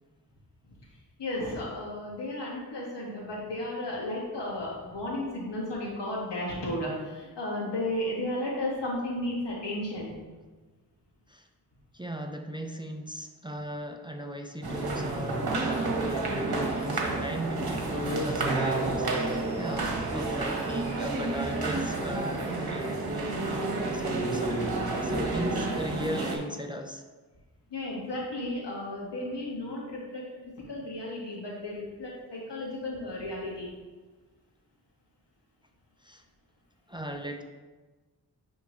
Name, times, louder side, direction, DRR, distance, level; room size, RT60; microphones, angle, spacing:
voice 1, 1.2-10.1 27.7-30.2 30.7-33.7, left 1 dB, 90° left, -4 dB, 1.8 m, -34 dB
voice 2, 11.9-24.7 25.0-27.0 36.0-36.2 36.9-37.4, equal, 10° right, 4 dB, 0.4 m, -37 dB
sound 1, 14.6-26.4, right 2 dB, 65° right, 1.2 m, -30 dB
9.7 x 3.5 x 3.1 m, 1.3 s
wide cardioid pair, 75°, 41 cm